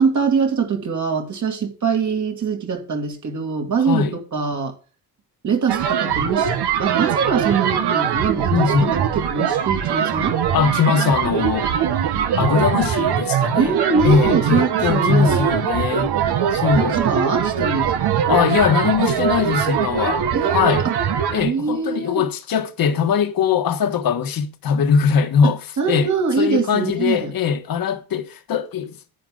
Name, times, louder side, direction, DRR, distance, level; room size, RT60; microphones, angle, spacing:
voice 1, 0.0-4.7 5.4-6.5 6.8-10.4 13.6-15.4 16.8-18.2 20.3-20.9 21.4-22.3 25.4-27.3, right 5 dB, 50° right, 2.6 m, -23 dB
sound 1, 5.7-21.4, right 8 dB, 85° right, 1.4 m, -21 dB
voice 2, 8.5-9.0 10.5-11.7 12.4-13.7 14.0-16.1 16.5-17.0 18.3-20.2 20.5-20.8 21.3-25.6 25.8-26.1 26.4-29.0, left 7 dB, 65° left, 1.5 m, -20 dB
10.0 x 10.0 x 3.8 m
cardioid pair, 140°, 38 cm